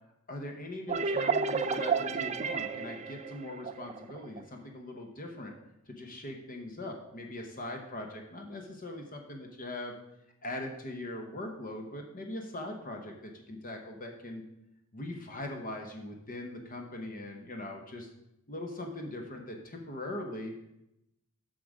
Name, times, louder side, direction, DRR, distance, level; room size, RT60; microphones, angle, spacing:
voice 1, 0.3-5.5 5.9-9.9 10.4-14.5 14.9-18.1 18.5-20.6, left 1 dB, 40° left, 3 dB, 1.0 m, -41 dB
sound 1, 0.9-4.4, right 5 dB, 30° right, 0.4 m, -31 dB
7.7 x 6.5 x 5.0 m, 0.84 s
head